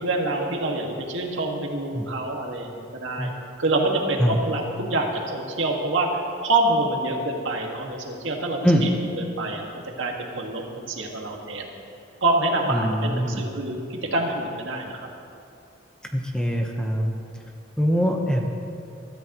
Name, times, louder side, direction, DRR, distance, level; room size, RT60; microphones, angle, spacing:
voice 1, 0.0-3.3 3.6-8.9 9.2-11.7 12.2-15.1, right 2 dB, 80° right, 0 dB, 1.9 m, -26 dB
voice 2, 12.7-13.4 16.1-17.1 17.8-18.5, equal, 5° left, 1 dB, 1.0 m, -23 dB
23.5 x 13.5 x 3.1 m, 2.5 s
head